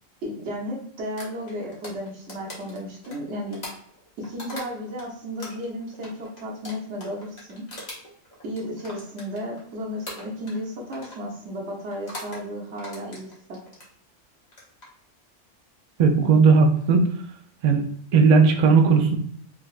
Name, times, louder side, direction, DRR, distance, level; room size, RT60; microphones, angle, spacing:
voice 1, 0.2-3.6 4.2-7.6 8.4-13.6, equal, 65° right, -1 dB, 1.1 m, -34 dB
sound 1, 1.2-5.1 5.4-9.7 10.1-10.6 10.9-11.2 11.9-12.4 12.8-13.9 14.4-14.9, left 1 dB, 35° left, 0.9 m, -40 dB
voice 2, 16.0-17.0 17.6-17.9 18.1-19.2, right 5 dB, 85° right, 3 dB, 0.3 m, -16 dB
3.7 x 2.2 x 2.4 m, 0.66 s
omnidirectional pair, 1.3 m